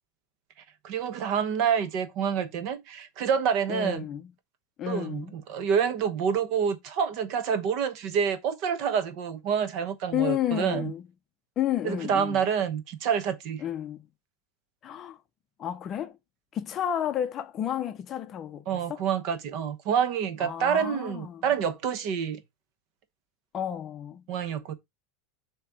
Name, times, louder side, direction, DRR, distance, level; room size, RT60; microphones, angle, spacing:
voice 1, 0.8-4.1 4.9-10.9 11.8-13.6 18.7-22.4 24.3-24.7, right 7 dB, 45° right, 0.9 m, -27 dB
voice 2, 3.7-4.3 4.8-5.3 10.1-11.0 11.6-12.4 13.6-14.0 14.8-15.2 15.6-16.2 16.5-19.0 20.4-21.5 23.5-24.2, left 10 dB, 25° left, 0.6 m, -31 dB
7.3 x 2.9 x 4.7 m
supercardioid pair, 160°, 0 cm